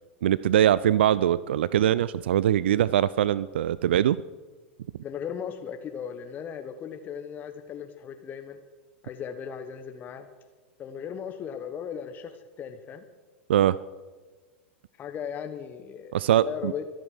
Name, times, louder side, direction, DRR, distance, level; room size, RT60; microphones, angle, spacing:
voice 1, 0.2-4.2 13.5-13.8 16.1-16.7, right 11 dB, 65° right, 19 dB, 0.4 m, -22 dB
voice 2, 5.0-8.6 9.0-10.3 10.8-13.0 15.0-16.2 16.4-16.8, left 8 dB, 30° left, 6 dB, 1.1 m, -37 dB
24.5 x 9.2 x 6.4 m, 1.4 s
figure-of-eight pair, 90°, 6 cm